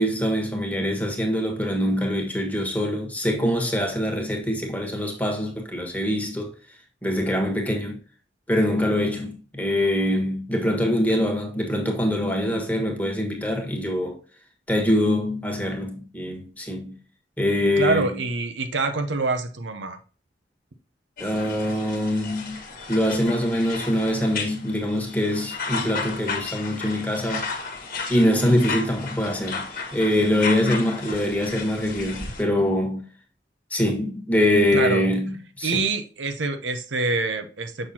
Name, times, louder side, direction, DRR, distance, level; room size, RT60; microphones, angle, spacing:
voice 1, 0.0-6.5 7.0-8.0 8.5-14.2 14.7-17.0 17.4-18.1 21.2-22.6 22.9-27.5 28.1-33.0 33.7-35.8, left 1 dB, 10° left, 1.5 m, -24 dB
voice 2, 17.8-20.0 34.7-35.1 35.6-37.9, right 3 dB, 80° right, 0.8 m, -26 dB
sound 1, 21.2-32.4, left 4 dB, 50° left, 1.4 m, -34 dB
6.6 x 5.9 x 2.8 m
head